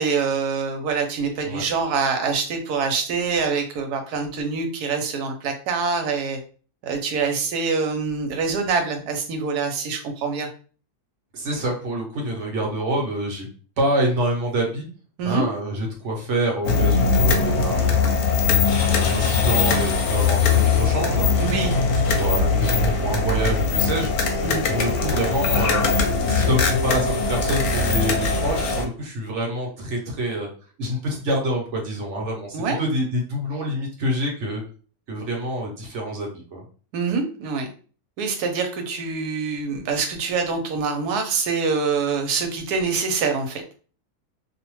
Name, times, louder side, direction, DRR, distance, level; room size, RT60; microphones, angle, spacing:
voice 1, 0.0-6.4 6.8-10.5 15.2-15.5 21.4-21.7 24.4-24.6 32.5-32.8 36.9-37.7 38.2-43.6, right 5 dB, 85° right, 5 dB, 1.1 m, -25 dB
voice 2, 11.3-13.5 13.8-14.9 15.2-18.0 18.8-21.3 21.9-24.1 24.6-25.9 26.3-30.5 30.8-34.6 35.1-36.6, right 1 dB, 60° right, 0 dB, 0.9 m, -26 dB
sound 1, 16.6-28.9, left 4 dB, 75° left, 1.0 m, -21 dB
2.6 x 2.1 x 2.9 m, 0.40 s
omnidirectional pair, 1.6 m